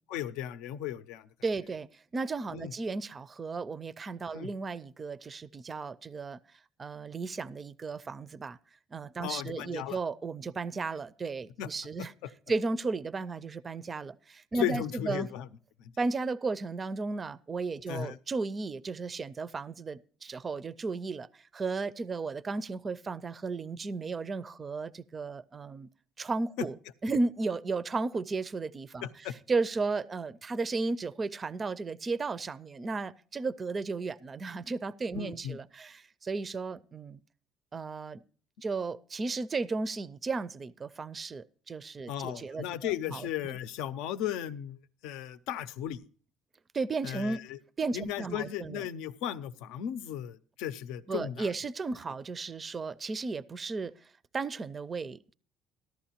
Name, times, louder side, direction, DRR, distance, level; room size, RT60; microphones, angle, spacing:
voice 1, 0.1-1.3 2.5-2.7 4.3-4.5 9.2-10.0 11.6-11.7 12.0-12.3 14.5-15.5 15.8-15.9 17.9-18.2 26.6-26.7 29.0-29.3 35.1-35.6 42.1-44.8 45.0-46.1 47.0-47.6 47.9-51.5, left 10 dB, 85° left, 0.6 m, -36 dB
voice 2, 1.4-6.4 6.8-8.6 8.9-12.1 12.5-15.3 16.0-25.9 26.2-26.7 27.0-29.1 29.5-37.2 37.7-38.2 38.6-43.6 46.7-47.4 47.8-48.9 51.1-55.3, right 3 dB, 25° right, 0.4 m, -34 dB
14.5 x 11.5 x 2.8 m
cardioid pair, 120°, 0 cm